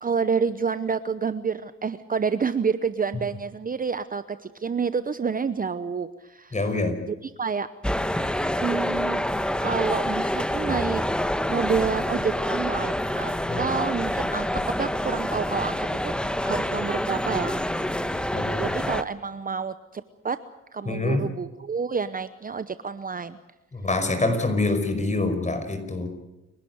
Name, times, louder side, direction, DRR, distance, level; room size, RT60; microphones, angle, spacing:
voice 1, 0.0-7.7 8.6-9.2 9.6-11.0 11.5-13.3 13.6-17.8 18.6-20.4 20.7-23.4, right 5 dB, 30° right, 13 dB, 0.9 m, -29 dB
voice 2, 6.5-7.0 13.5-13.6 18.3-18.7 20.9-21.2 23.7-26.1, left 2 dB, 25° left, 8 dB, 5.2 m, -25 dB
sound 1, 7.8-19.0, left 1 dB, 5° left, 1.2 m, -27 dB
29.5 x 12.0 x 9.5 m, 1.0 s
cardioid pair, 90°, 30 cm